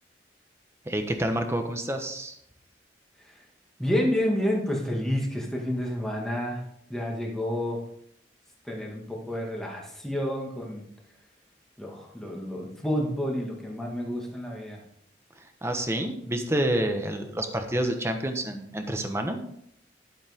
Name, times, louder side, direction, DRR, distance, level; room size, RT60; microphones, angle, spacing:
voice 1, 0.9-2.4 15.6-19.4, right 1 dB, 15° right, 5 dB, 1.1 m, -28 dB
voice 2, 3.8-6.6 6.9-7.8 8.6-10.9 11.8-14.8, left 1 dB, 5° left, -2 dB, 2.0 m, -29 dB
12.0 x 7.4 x 3.6 m, 0.69 s
head